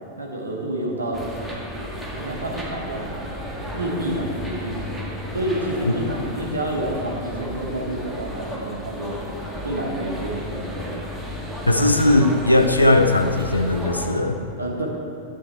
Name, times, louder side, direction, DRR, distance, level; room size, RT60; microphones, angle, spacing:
voice 1, 0.2-1.2 2.1-3.2 3.7-4.8 5.3-9.2 9.6-10.8 14.6-14.9, right 1 dB, 80° right, -1 dB, 1.7 m, -29 dB
sound 1, 1.1-14.1, equal, 10° right, 1.7 m, -33 dB
voice 2, 11.7-14.4, left 2 dB, 85° left, 6 dB, 0.7 m, -18 dB
10.5 x 8.2 x 4.5 m, 2.5 s
figure-of-eight pair, 90°, 0 cm